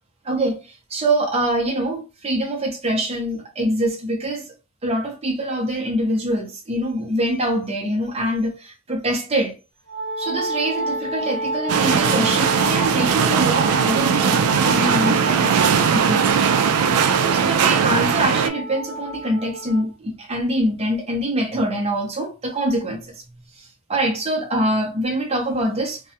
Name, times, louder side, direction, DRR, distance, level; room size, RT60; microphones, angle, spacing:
voice 1, 0.2-0.6 0.9-4.5 4.8-9.5 10.2-15.6 15.9-16.5 17.0-23.0 23.9-26.0, right 1 dB, 25° right, 0.6 m, -24 dB
Wind instrument woodwind instrument, 9.9-19.9, right 1 dB, 15° left, 0.8 m, -29 dB
sound 1, 11.7-18.5, right 7 dB, 80° right, 0.3 m, -19 dB
2.2 x 2.0 x 2.7 m
head